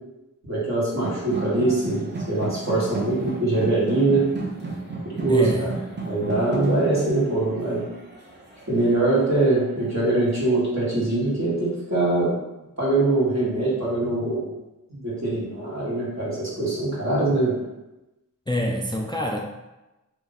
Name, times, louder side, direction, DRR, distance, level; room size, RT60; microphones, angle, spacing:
voice 1, 0.5-4.2 5.1-5.7 6.0-7.8 8.7-12.3 12.8-14.5 15.0-17.5, right 2 dB, 55° right, -7 dB, 1.5 m, -23 dB
sound 1, 0.9-9.8, right 3 dB, 35° right, 0.7 m, -34 dB
voice 2, 5.3-5.7 18.5-19.4, equal, 15° left, 0 dB, 0.3 m, -26 dB
2.5 x 2.5 x 3.9 m, 1.0 s
wide cardioid pair, 45°, 33 cm